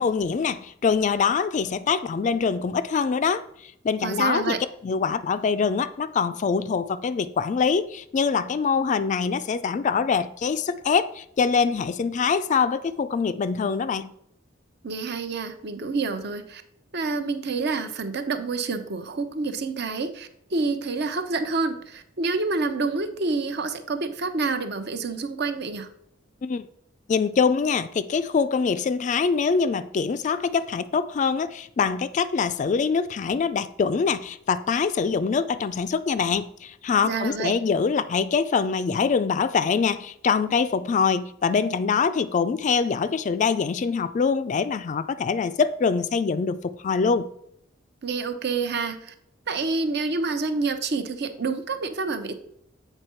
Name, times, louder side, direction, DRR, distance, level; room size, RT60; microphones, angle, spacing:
voice 1, 0.0-3.4 3.8-14.1 26.4-26.6 27.1-47.3, left 5 dB, 40° left, 0.3 m, -24 dB
voice 2, 4.0-4.6 14.8-16.6 16.9-25.9 37.0-37.5 48.0-49.1 49.5-52.3, right 4 dB, 60° right, 0.7 m, -28 dB
7.9 x 4.5 x 4.4 m
head